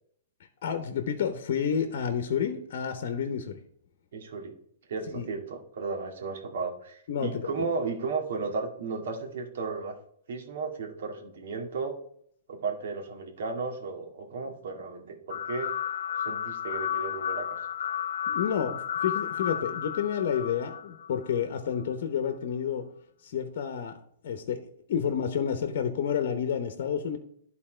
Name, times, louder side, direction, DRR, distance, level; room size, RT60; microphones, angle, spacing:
voice 1, 0.6-3.6 5.1-5.3 7.1-7.5 18.3-22.9 23.2-24.0 24.2-27.2, left 8 dB, 60° left, 8 dB, 1.0 m, -30 dB
voice 2, 4.1-4.6 4.9-10.0 10.3-11.9 12.5-15.7 16.3-17.6, right 4 dB, 65° right, 2 dB, 2.0 m, -34 dB
sound 1, 15.3-21.4, left 9 dB, 75° left, 0.5 m, -33 dB
11.0 x 4.2 x 4.4 m, 0.65 s
hypercardioid pair, 135°, 0 cm